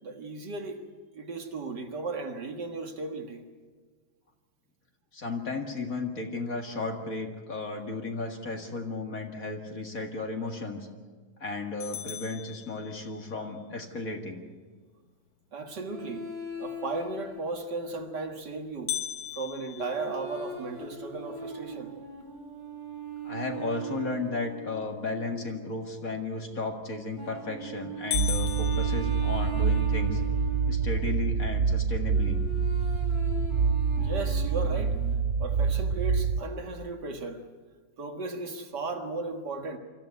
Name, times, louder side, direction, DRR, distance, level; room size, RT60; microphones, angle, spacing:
voice 1, 0.0-0.8 1.1-3.5 15.5-16.3 16.6-19.0 19.3-21.9 33.5-33.6 34.0-35.0 35.4-37.4 38.0-39.8, right 3 dB, 55° right, 4 dB, 2.2 m, -36 dB
voice 2, 5.1-10.9 11.4-14.4 23.2-30.2 30.7-32.4, left 3 dB, 45° left, 3 dB, 2.3 m, -34 dB
sound 1, 11.8-13.4 18.9-21.0 21.5-21.6 22.1-22.2 22.9-23.2 26.8-27.2 27.6-27.7 28.1-29.8, left 12 dB, 70° left, 1.5 m, -37 dB
sound 2, 15.9-18.1 19.7-25.8 27.2-31.2 32.1-35.2, right 3 dB, 20° right, 5.1 m, -39 dB
sound 3, 28.1-36.4, right 5 dB, 85° right, 0.5 m, -26 dB
25.0 x 14.0 x 9.3 m, 1.5 s
omnidirectional pair, 2.2 m